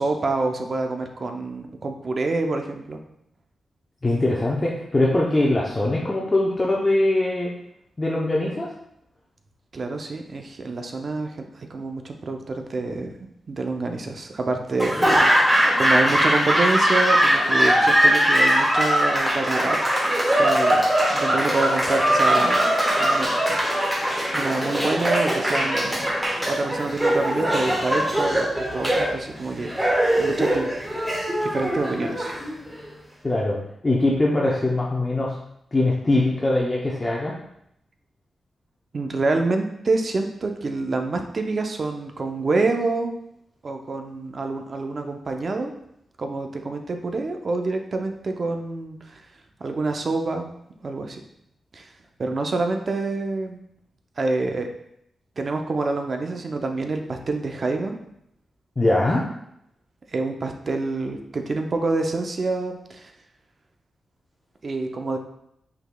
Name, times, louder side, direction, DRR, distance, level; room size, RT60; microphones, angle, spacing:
voice 1, 0.0-3.0 9.7-13.1 13.5-19.8 20.4-22.7 23.0-23.6 24.3-26.0 26.5-30.7 31.4-32.4 38.9-43.2 43.6-45.7 46.2-49.2 49.6-50.5 50.8-51.2 51.7-51.9 52.2-53.6 54.2-54.7 55.4-58.0 60.1-63.1 64.6-65.2, right 3 dB, 45° right, 4 dB, 0.5 m, -27 dB
voice 2, 4.0-7.5 8.0-8.7 33.2-33.6 33.8-35.3 35.7-37.3 58.8-59.2, left 2 dB, 25° left, -4 dB, 0.7 m, -22 dB
Laughter / Applause, 14.8-32.9, equal, 10° right, 1.2 m, -21 dB
5.5 x 4.0 x 2.2 m, 0.75 s
wide cardioid pair, 100°, 0 cm